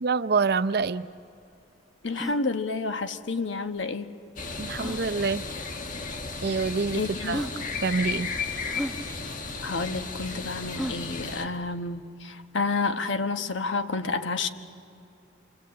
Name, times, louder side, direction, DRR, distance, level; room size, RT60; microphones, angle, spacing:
voice 1, 0.0-1.1 4.6-5.4 6.4-7.5 7.8-8.3, right 4 dB, 55° right, 12 dB, 0.6 m, -26 dB
sound 1, 0.5-0.6 0.8-0.9 1.4-1.5 2.0-2.4 3.7-3.8 4.7-5.1 6.0-6.1 6.9-7.0 7.3-7.6 8.7-9.0 10.7-11.1, equal, ahead, 1.0 m, -34 dB
voice 2, 2.0-4.1 6.9-7.4 9.6-14.5, left 3 dB, 70° left, 8 dB, 1.2 m, -30 dB
sound 2, 4.4-11.5, left 4 dB, 45° left, 1.5 m, -34 dB
26.5 x 26.0 x 8.5 m, 2.7 s
head